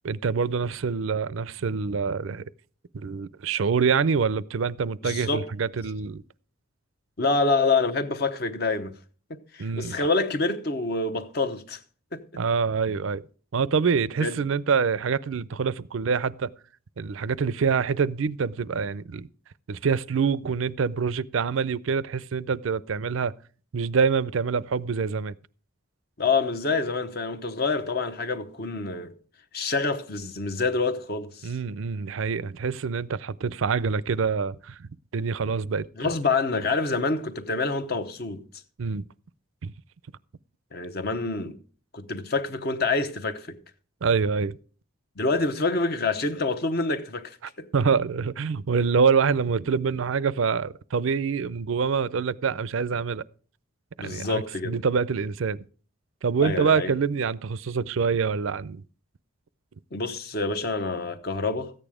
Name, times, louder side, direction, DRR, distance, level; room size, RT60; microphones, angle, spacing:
voice 1, 0.0-2.4 2.9-6.2 9.6-10.1 12.4-13.2 13.5-16.5 17.0-19.3 19.7-23.3 23.7-25.3 31.4-34.8 35.1-36.1 38.8-39.0 39.6-39.7 44.0-44.6 47.7-53.2 54.0-55.6 56.2-58.8, right 5 dB, 70° right, 0.5 m, -26 dB
voice 2, 5.0-5.5 7.2-8.9 9.3-11.8 12.1-12.2 14.2-14.3 26.2-29.1 29.5-31.5 36.0-38.4 40.7-41.6 41.9-43.6 45.2-47.7 54.0-54.8 56.4-56.9 59.9-61.7, left 3 dB, 50° left, 0.9 m, -27 dB
14.0 x 9.0 x 4.9 m
head